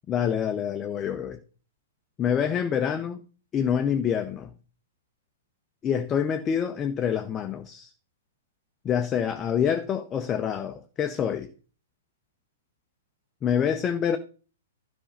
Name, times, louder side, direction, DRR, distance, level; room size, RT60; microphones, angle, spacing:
voice 1, 0.1-1.4 2.2-3.2 3.5-4.5 5.8-7.9 8.8-11.5 13.4-14.2, left 8 dB, 20° left, 0.9 m, -26 dB
12.5 x 5.5 x 5.3 m
figure-of-eight pair, 110°, 0 cm